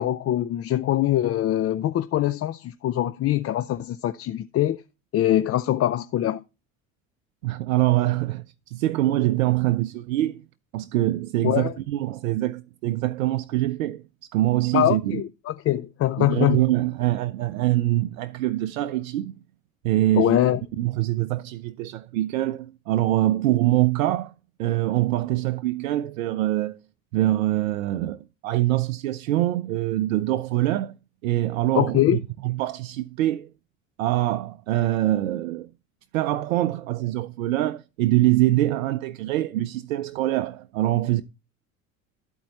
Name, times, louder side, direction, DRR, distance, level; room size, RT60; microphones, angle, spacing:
voice 1, 0.0-4.8 5.1-6.4 11.4-11.7 14.7-16.6 20.1-20.6 31.7-32.2, left 13 dB, 35° left, 0.5 m, -23 dB
voice 2, 7.4-10.4 10.7-14.0 14.3-15.2 16.2-19.4 19.8-20.4 20.8-24.3 24.6-26.8 27.1-31.0 31.2-33.5 34.0-35.7 36.1-41.2, right 15 dB, 80° right, 0.6 m, -24 dB
12.0 x 4.4 x 4.1 m
hypercardioid pair, 70°, 40 cm